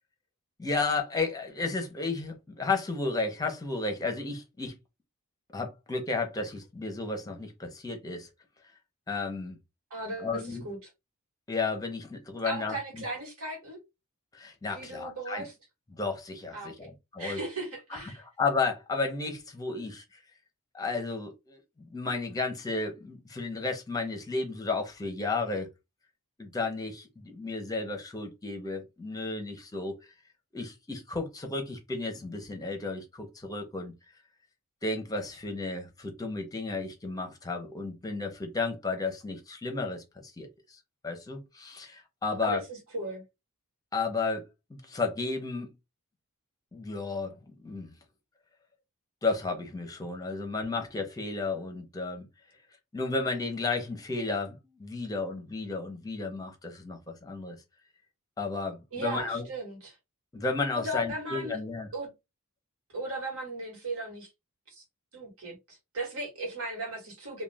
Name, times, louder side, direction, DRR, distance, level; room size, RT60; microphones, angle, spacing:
voice 1, 0.6-4.7 5.5-8.3 9.1-9.6 10.2-10.7 11.5-13.0 14.3-15.4 16.0-17.4 17.9-20.0 20.7-25.7 26.4-30.0 30.5-33.9 34.8-40.0 40.4-40.8 41.0-42.6 43.9-44.4 44.7-45.7 46.7-47.9 49.2-52.3 52.9-57.6 58.4-59.4 60.3-61.9, left 3 dB, 15° left, 0.7 m, -33 dB
voice 2, 9.9-10.9 12.4-13.8 14.7-15.5 16.5-16.7 17.2-18.2 42.4-42.6 42.9-43.2 58.9-60.0 60.7-61.6 61.9-62.1 62.9-64.3 64.7-64.8 65.1-67.4, right 2 dB, 70° right, 1.3 m, -37 dB
2.4 x 2.2 x 3.2 m
head